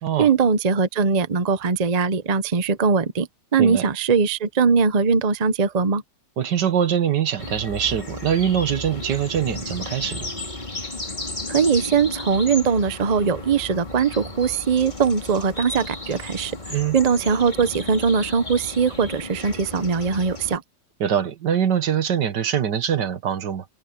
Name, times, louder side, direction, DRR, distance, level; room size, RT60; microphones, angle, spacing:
voice 1, 0.2-6.0 11.5-20.6, right 5 dB, 40° right, 0.6 m, -21 dB
voice 2, 6.4-10.3 16.7-17.0 21.0-23.7, right 8 dB, 70° right, 1.8 m, -23 dB
sound 1, 7.4-20.6, left 2 dB, 25° left, 3.0 m, -34 dB
omnidirectional pair, 2.0 m